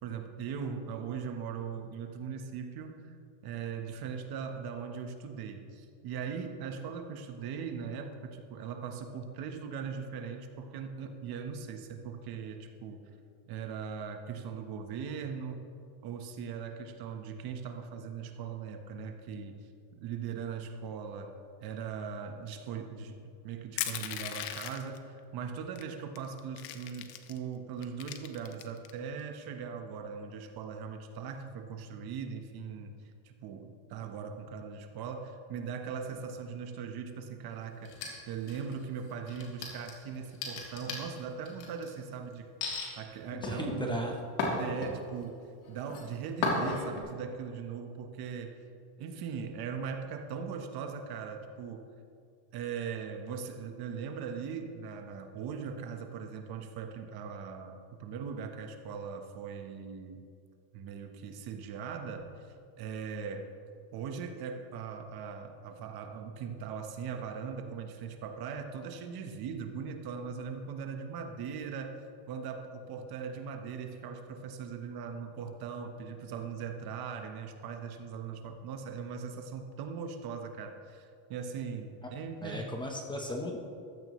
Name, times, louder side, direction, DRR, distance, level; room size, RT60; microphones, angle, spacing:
voice 1, 0.0-3.2 3.4-13.0 13.5-15.7 16.0-19.7 20.0-23.2 23.4-32.9 33.2-42.5 43.0-44.1 44.6-45.4 45.7-48.6 49.0-51.9 52.5-60.2 60.7-62.3 62.8-63.5 63.9-72.0 72.3-82.7, right 6 dB, 50° right, 5 dB, 1.3 m, -40 dB
Crushing, 23.8-25.0 25.8-25.9 26.2-27.4 27.8-28.9, left 12 dB, 90° left, 1.1 m, -38 dB
sound 1, 37.8-38.8 39.3-41.9 42.6-42.9 43.4-45.2 45.6-46.0 46.4-47.0, left 3 dB, 60° left, 3.4 m, -34 dB
voice 2, 43.3-44.1 82.4-83.6, left 1 dB, 10° left, 1 dB, 1.0 m, -36 dB
15.0 x 13.0 x 3.2 m, 2.3 s
cardioid pair, 145°, 48 cm